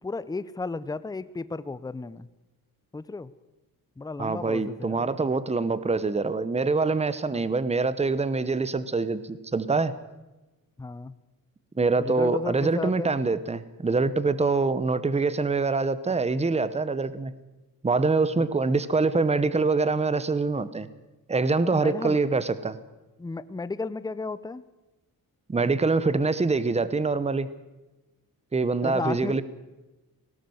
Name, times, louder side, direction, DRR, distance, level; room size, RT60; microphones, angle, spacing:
voice 1, 0.0-2.3 2.9-3.3 4.0-5.3 7.3-7.4 10.8-11.1 12.0-13.2 18.3-18.8 21.6-22.2 23.2-24.6 28.8-29.4, left 3 dB, 10° left, 15 dB, 0.7 m, -34 dB
voice 2, 4.2-9.9 11.8-17.3 17.8-20.9 21.3-22.8 25.5-27.5 28.5-29.4, right 3 dB, 15° right, 15 dB, 1.0 m, -25 dB
18.5 x 17.5 x 7.9 m, 1.1 s
cardioid pair, 125°, 36 cm